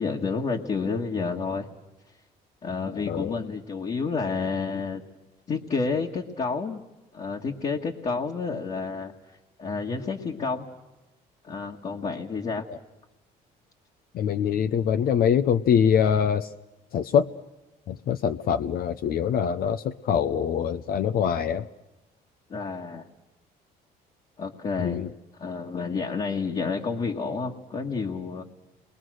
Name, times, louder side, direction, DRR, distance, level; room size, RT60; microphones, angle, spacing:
voice 1, 0.0-1.7 2.6-5.0 5.5-6.8 7.1-9.1 9.6-10.7 11.4-12.6 22.5-23.1 24.4-25.0 25.4-28.4, left 4 dB, 40° left, 0 dB, 1.8 m, -30 dB
voice 2, 3.1-3.4 12.7-12.8 14.1-16.5 16.9-17.3 17.9-21.7 24.8-25.1, left 8 dB, 60° left, 9 dB, 0.8 m, -24 dB
29.0 x 22.5 x 6.4 m, 1.0 s
cardioid pair, 110°, 17 cm